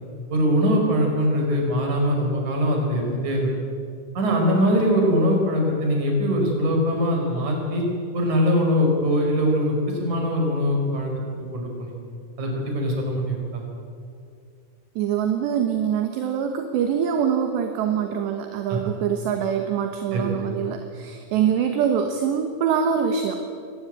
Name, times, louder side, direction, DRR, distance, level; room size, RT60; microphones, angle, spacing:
voice 1, 0.3-3.5 4.2-7.8 8.1-11.1 11.5-11.9 12.4-13.6 18.7-18.8 20.1-20.5, equal, 40° right, 1 dB, 5.9 m, -22 dB
voice 2, 15.0-23.5, right 8 dB, 70° right, 5 dB, 3.1 m, -24 dB
23.0 x 18.5 x 8.9 m, 2.4 s
omnidirectional pair, 5.8 m